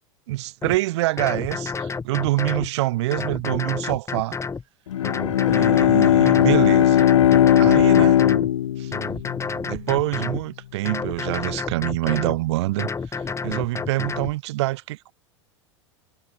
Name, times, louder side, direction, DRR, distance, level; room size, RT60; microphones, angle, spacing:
voice 1, 0.3-4.4 5.5-7.1 7.6-8.2 8.8-8.9 9.7-12.9 13.4-15.1, right 18 dB, 65° right, 2.4 m, -25 dB
sound 1, 0.6-0.8 1.2-2.7 3.1-4.6 5.0-6.6 7.0-8.5 8.9-10.4 10.9-12.4 12.8-14.3, left 5 dB, 20° left, 3.3 m, -30 dB
Bowed string instrument, 4.9-9.7, left 11 dB, 80° left, 0.5 m, -18 dB
hypercardioid pair, 90°, 16 cm